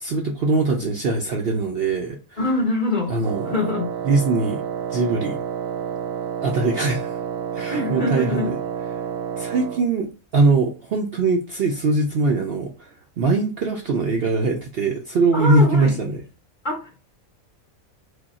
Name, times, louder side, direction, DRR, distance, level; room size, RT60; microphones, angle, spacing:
voice 1, 0.0-2.4 3.1-3.4 4.1-4.6 4.9-5.4 6.4-7.1 7.5-8.6 9.4-10.1 10.3-16.2, right 3 dB, 60° right, 0.7 m, -21 dB
voice 2, 2.4-3.2 3.4-3.9 7.7-8.5 15.3-15.9 16.6-17.0, left 2 dB, 40° left, 1.3 m, -24 dB
Wind instrument woodwind instrument, 3.2-9.9, right 8 dB, 80° right, 1.0 m, -29 dB
4.8 x 2.3 x 4.2 m
omnidirectional pair, 1.4 m